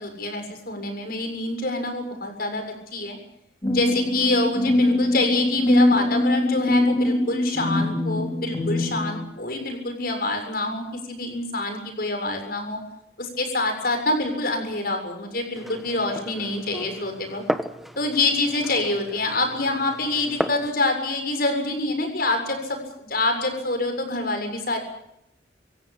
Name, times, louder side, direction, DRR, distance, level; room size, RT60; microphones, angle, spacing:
voice 1, 0.0-2.6 2.9-3.2 3.7-12.8 13.2-17.4 18.0-24.8, left 2 dB, 55° left, 5 dB, 7.2 m, -26 dB
sound 1, 3.6-9.2, left 1 dB, 20° left, 4.8 m, -22 dB
Glass, 15.6-20.7, equal, ahead, 1.2 m, -34 dB
26.5 x 16.5 x 8.6 m, 0.79 s
head